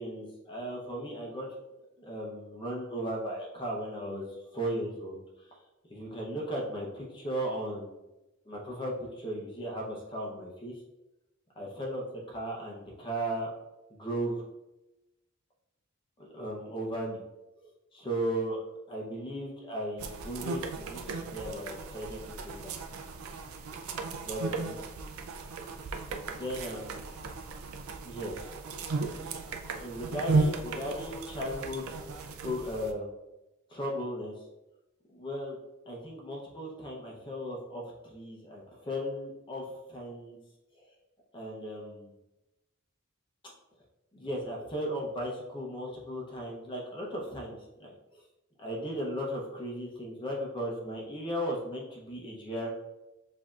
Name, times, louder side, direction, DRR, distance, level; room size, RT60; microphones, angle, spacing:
voice 1, 0.0-1.5 2.0-4.3 4.5-5.2 5.9-8.0 8.5-10.8 11.6-13.5 13.9-14.4 16.2-17.2 17.6-18.6 18.9-22.8 24.2-24.8 26.3-26.9 28.0-28.5 29.2-29.4 29.7-31.8 32.4-33.1 33.7-34.3 35.1-35.6 35.9-40.4 40.8-40.9 41.3-42.1 44.1-48.2 48.6-52.7, equal, 25° left, -2 dB, 0.7 m, -36 dB
sound 1, 20.0-32.9, right 3 dB, 85° right, 0.4 m, -35 dB
7.2 x 2.7 x 2.4 m, 0.99 s
head